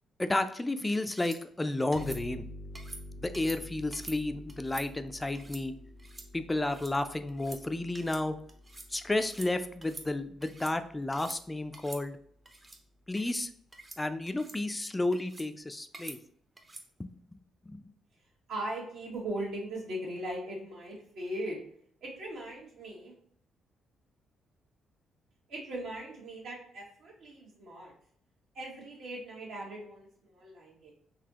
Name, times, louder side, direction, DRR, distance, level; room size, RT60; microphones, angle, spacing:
voice 1, 0.2-2.5 3.2-5.7 6.3-8.4 8.9-12.2 13.1-13.5 14.0-16.2 17.0-17.1 17.7-17.8, left 2 dB, 15° left, 9 dB, 0.4 m, -32 dB
sound 1, 1.1-1.4 1.9-2.2 2.8-3.0 3.3-3.6 3.9-4.2 4.5-4.9 5.3-5.6 6.0-6.3 6.6-6.9 7.3-7.6 7.9-8.2 8.5-8.9 9.2-9.5 9.8-10.7 11.1-11.4 11.7-12.0 12.5-12.8 13.2-13.4 13.7-14.0 14.3-14.6 15.1-15.5 15.9-16.2 16.6-16.9, right 2 dB, 25° right, 0.6 m, -47 dB
sound 2, 1.9-11.2, left 1 dB, 90° left, 0.6 m, -48 dB
voice 2, 18.5-21.6 22.0-23.1 25.5-27.9 28.5-30.9, right 1 dB, 75° right, -3 dB, 1.4 m, -39 dB
4.0 x 2.7 x 2.9 m, 0.62 s
cardioid pair, 75°, 0 cm